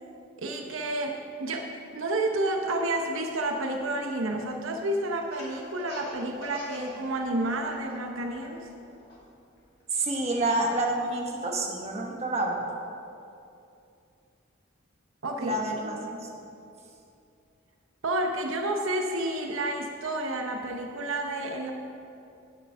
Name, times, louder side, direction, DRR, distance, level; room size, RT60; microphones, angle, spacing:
voice 1, 0.4-1.7 1.9-8.7 15.2-15.6 15.8-15.9 18.0-21.7, right 1 dB, 80° right, 3 dB, 0.8 m, -30 dB
Laughter, 5.2-7.0 7.3-7.9 8.3-10.0, left 1 dB, 50° left, 2.4 m, -42 dB
voice 2, 9.9-12.6 15.4-16.3, right 2 dB, 30° right, 0 dB, 1.1 m, -28 dB
9.2 x 6.9 x 5.5 m, 2.6 s
head